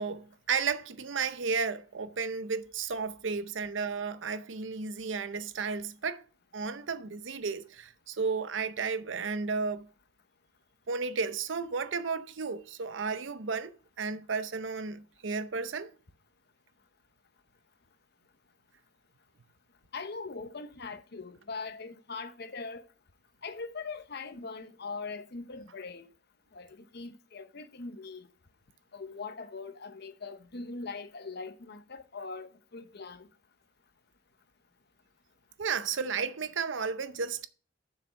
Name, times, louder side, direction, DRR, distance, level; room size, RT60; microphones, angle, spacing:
voice 1, 0.0-6.2 6.5-9.9 10.9-15.9 35.6-37.5, right 5 dB, 75° right, 0.7 m, -33 dB
voice 2, 19.9-22.8 23.4-26.1 26.5-28.3 28.9-33.3, left 4 dB, 60° left, 0.9 m, -41 dB
7.1 x 7.0 x 5.2 m
head